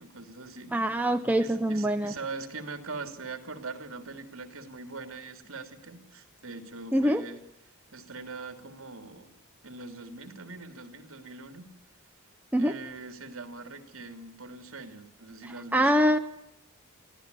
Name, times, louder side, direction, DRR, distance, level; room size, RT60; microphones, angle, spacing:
voice 1, 0.0-0.8 1.4-7.4 7.9-9.3 9.6-11.7 12.6-16.1, right 3 dB, 65° right, 7 dB, 3.1 m, -42 dB
voice 2, 0.7-2.1 6.9-7.2 12.5-12.8 15.7-16.2, equal, 5° right, 6 dB, 0.8 m, -24 dB
25.5 x 16.0 x 9.8 m, 0.83 s
head